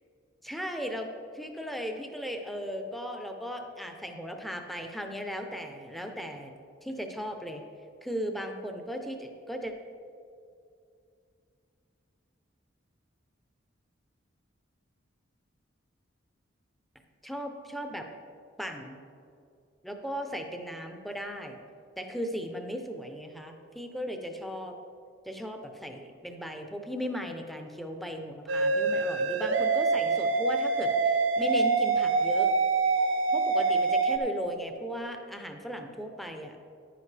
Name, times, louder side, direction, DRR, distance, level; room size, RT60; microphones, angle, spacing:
voice 1, 0.4-6.5 6.8-7.6 8.0-9.7 17.2-18.1 18.6-19.0 19.8-21.6 22.0-24.8 25.2-30.9 31.4-32.5 33.3-36.6, equal, ahead, 4 dB, 0.6 m, -37 dB
sound 1, 28.5-34.2, right 4 dB, 75° right, 0.7 m, -25 dB
10.0 x 9.8 x 3.3 m, 2.5 s
head